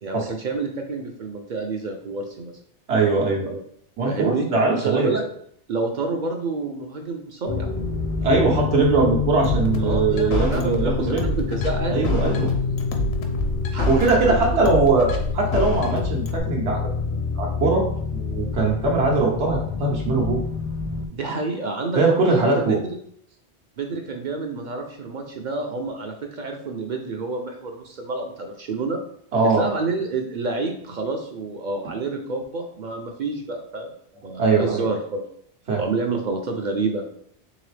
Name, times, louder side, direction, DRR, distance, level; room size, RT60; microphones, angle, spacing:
voice 1, 0.0-2.5 4.0-5.2 5.7-7.7 9.8-12.1 13.7-14.4 21.1-23.0 23.8-29.0 29.5-33.9 34.2-35.2 35.8-37.0, right 3 dB, 55° right, 3 dB, 0.5 m, -28 dB
voice 2, 2.9-3.6 4.0-5.2 8.2-11.2 11.9-12.5 13.9-16.9 17.4-17.8 18.1-20.4 21.9-22.8 29.3-29.7 34.4-34.9 35.7-35.8, right 3 dB, 80° right, -1 dB, 1.1 m, -21 dB
sound 1, 7.5-21.1, left 5 dB, 50° left, 0.4 m, -27 dB
sound 2, 9.4-16.4, left 1 dB, 70° left, 0.9 m, -27 dB
3.8 x 3.2 x 3.2 m, 0.66 s
omnidirectional pair, 1.1 m